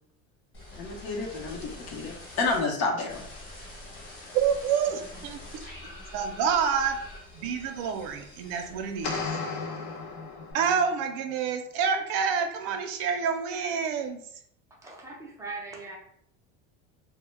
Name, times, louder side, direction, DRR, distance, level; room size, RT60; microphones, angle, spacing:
sound 1, 0.5-2.6 3.1-9.6 9.9-10.5, left 1 dB, 35° left, 1.1 m, -45 dB
voice 1, 0.7-3.2, left 3 dB, 50° left, 0 dB, 0.7 m, -30 dB
voice 2, 4.3-5.4 6.1-7.0 7.3-9.2 10.5-14.2, right 6 dB, 75° right, 5 dB, 0.5 m, -28 dB
sound 2, 9.0-11.0, left 4 dB, 85° left, 0.6 m, -34 dB
voice 3, 14.8-16.0, right 3 dB, 10° right, -3 dB, 0.4 m, -40 dB
2.1 x 2.0 x 3.2 m, 0.66 s
cardioid pair, 140°, 34 cm